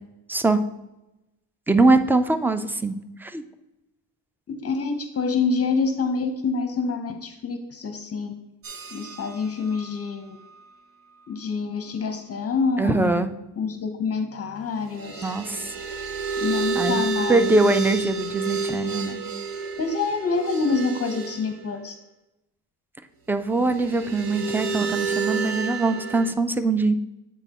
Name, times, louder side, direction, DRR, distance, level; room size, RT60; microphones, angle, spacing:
voice 1, 0.3-0.6 1.7-3.4 12.8-13.3 15.2-15.7 16.7-17.0 17.3-19.2 23.3-26.9, right 3 dB, 5° right, 10 dB, 0.3 m, -22 dB
voice 2, 4.5-8.3 8.9-10.4 11.3-15.3 16.4-18.1 19.8-22.0, left 4 dB, 35° left, 7 dB, 0.7 m, -27 dB
sound 1, 8.6-10.8 11.2-11.3 14.9-21.6 23.6-26.3, right 4 dB, 55° right, 1.0 m, -30 dB
9.0 x 4.1 x 2.9 m, 0.95 s
cardioid pair, 90°, 41 cm